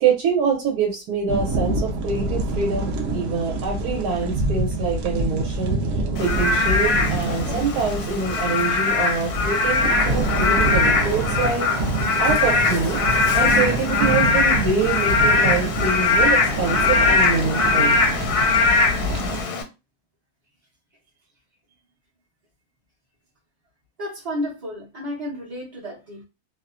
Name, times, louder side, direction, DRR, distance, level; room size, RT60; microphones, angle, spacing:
voice 1, 0.0-5.8 6.2-11.7 12.2-13.0 13.3-18.0, right 5 dB, 90° right, -1 dB, 1.2 m, -25 dB
sound 1, 1.3-19.4, right 2 dB, 65° right, 0.8 m, -26 dB
Frog / Rain, 6.2-19.6, left 4 dB, 85° left, 1.1 m, -21 dB
voice 2, 24.0-26.2, left 1 dB, 35° right, -6 dB, 0.7 m, -31 dB
2.7 x 2.1 x 2.4 m, 0.27 s
omnidirectional pair, 1.6 m